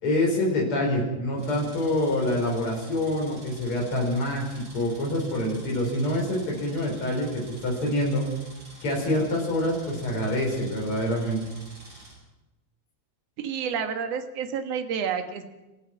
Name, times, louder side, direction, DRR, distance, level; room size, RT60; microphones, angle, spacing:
voice 1, 0.0-8.2 8.8-11.4, left 1 dB, 45° left, -1 dB, 5.8 m, -26 dB
sound 1, 1.4-12.1, right 2 dB, 85° right, 9.5 m, -48 dB
voice 2, 13.4-15.4, right 7 dB, 60° right, 6 dB, 2.6 m, -29 dB
28.5 x 15.0 x 6.1 m, 1.0 s
omnidirectional pair, 3.3 m